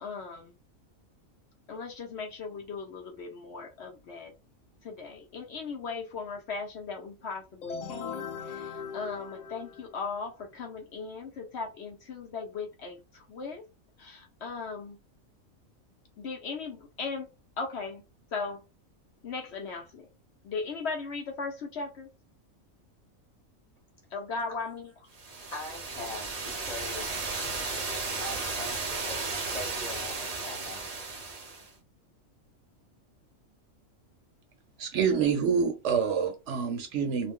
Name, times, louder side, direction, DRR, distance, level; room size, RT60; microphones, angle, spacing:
voice 1, 0.0-0.5 1.7-4.3 4.8-13.6 14.0-15.0 16.2-17.3 17.6-18.0 18.3-18.6 19.2-20.1 20.4-22.1 24.1-24.9, left 4 dB, 60° left, 0.8 m, -37 dB
sound 1, 7.6-10.3, left 6 dB, 90° left, 0.3 m, -39 dB
sound 2, 25.2-31.7, right 3 dB, 45° right, 0.5 m, -34 dB
voice 2, 25.5-27.4 28.2-30.2 30.4-31.1, left 2 dB, 35° left, 1.0 m, -42 dB
voice 3, 34.8-37.3, right 6 dB, 65° right, 0.8 m, -27 dB
2.5 x 2.1 x 3.5 m
omnidirectional pair, 1.4 m